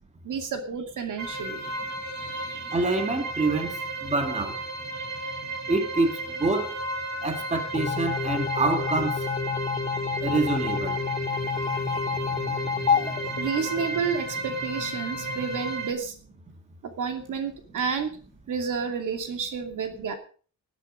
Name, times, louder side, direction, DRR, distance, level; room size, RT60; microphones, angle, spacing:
voice 1, 0.2-1.7 2.1-2.8 4.9-5.2 11.7-12.0 13.4-16.1 17.0-18.1 18.5-20.1, right 6 dB, 80° right, 6 dB, 2.6 m, -31 dB
sound 1, 1.2-15.9, right 2 dB, 60° right, 2.8 m, -34 dB
voice 2, 2.7-3.8 4.0-4.6 5.7-6.8 7.2-9.2 10.2-11.0, right 3 dB, 20° right, 6 dB, 2.0 m, -26 dB
sound 2, 7.7-14.2, left 6 dB, 25° left, 0.5 m, -29 dB
sound 3, 12.9-16.5 17.0-17.3 17.8-18.0 18.8-19.2, right 4 dB, 40° right, 3.9 m, -51 dB
18.5 x 9.6 x 5.0 m, 0.42 s
wide cardioid pair, 155°, 31 cm